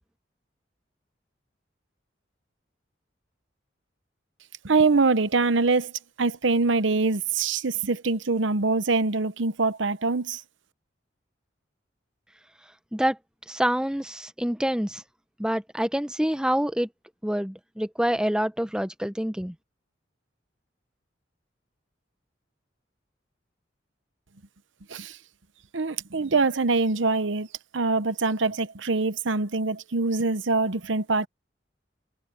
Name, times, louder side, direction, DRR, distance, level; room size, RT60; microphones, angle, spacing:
voice 1, 4.6-5.9 6.2-10.4 24.9-25.2 25.7-27.5 27.7-31.3, right 3 dB, 85° right, 0.9 m, -24 dB
voice 2, 13.5-15.0 15.4-16.9 17.2-19.5, equal, 5° right, 0.8 m, -26 dB
head